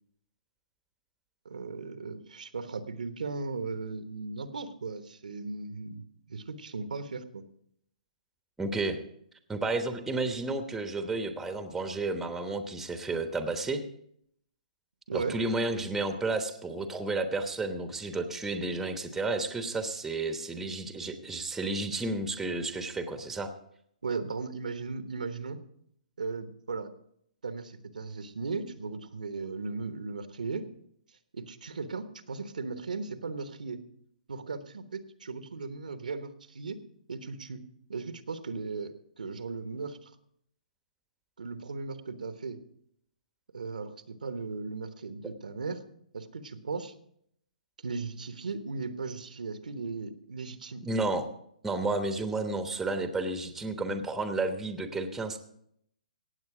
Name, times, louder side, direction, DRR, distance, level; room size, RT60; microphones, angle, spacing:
voice 1, 1.4-7.4 15.1-15.4 24.0-25.6 26.2-26.9 27.4-30.7 31.3-33.8 34.3-36.8 37.1-37.6 37.9-40.1 41.4-42.6 43.5-45.8 46.1-46.9 47.8-50.9, right 4 dB, 75° right, 10 dB, 1.1 m, -37 dB
voice 2, 8.6-9.0 9.5-13.8 15.1-23.5 50.8-51.3 51.6-55.4, right 2 dB, 5° right, 8 dB, 1.1 m, -32 dB
17.0 x 8.1 x 4.9 m, 0.71 s
hypercardioid pair, 135°, 4 cm